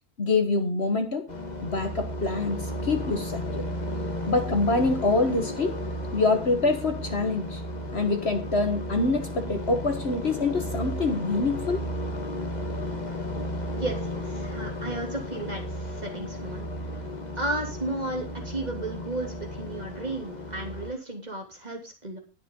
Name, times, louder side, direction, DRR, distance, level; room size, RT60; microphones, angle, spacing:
voice 1, 0.2-1.3 1.6-3.7 4.3-5.8 6.1-7.6 7.9-11.8, left 3 dB, 45° left, 6 dB, 1.7 m, -25 dB
sound 1, 1.3-20.9, left 1 dB, 30° left, 1.7 m, -34 dB
voice 2, 13.8-16.7 17.4-22.2, right 2 dB, 25° right, 2 dB, 3.1 m, -34 dB
20.0 x 6.8 x 3.9 m, 0.29 s
omnidirectional pair, 1.6 m